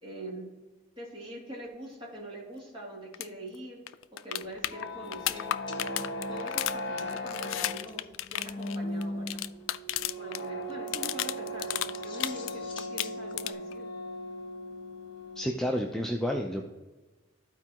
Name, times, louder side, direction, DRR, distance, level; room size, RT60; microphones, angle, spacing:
voice 1, 0.0-0.5 1.0-3.8 4.2-5.5 5.9-8.0 8.3-9.4 10.2-13.9, right 1 dB, 25° right, -4 dB, 2.6 m, -43 dB
sound 1, 3.1-3.3 3.5-3.6 3.9-10.4 10.7-12.5 12.8-13.7 15.8-15.9, left 14 dB, 85° left, 0.3 m, -33 dB
sound 2, 4.4-15.7, left 1 dB, 60° left, 1.1 m, -38 dB
sound 3, 5.4-7.6 7.9-8.1 8.3-8.4 8.6-8.7 11.7-13.5, left 3 dB, 25° left, 1.2 m, -50 dB
voice 2, 15.4-16.7, equal, 5° left, 1 dB, 0.4 m, -30 dB
13.5 x 4.6 x 2.9 m, 1.2 s
head